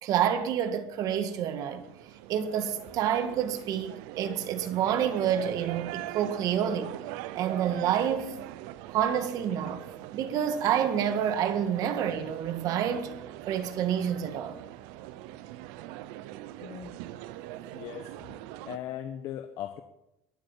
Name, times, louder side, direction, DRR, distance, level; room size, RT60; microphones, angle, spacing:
voice 1, 0.0-1.8 2.3-6.9 7.3-8.3 8.9-9.8 10.1-13.2 13.5-14.6, right 9 dB, 60° right, 1.8 m, -28 dB
sound 1, 0.8-18.8, right 14 dB, 85° right, 0.8 m, -43 dB
voice 2, 17.7-18.1 18.7-19.8, left 11 dB, 60° left, 1.1 m, -38 dB
22.5 x 7.9 x 7.3 m
cardioid pair, 120°, 7 cm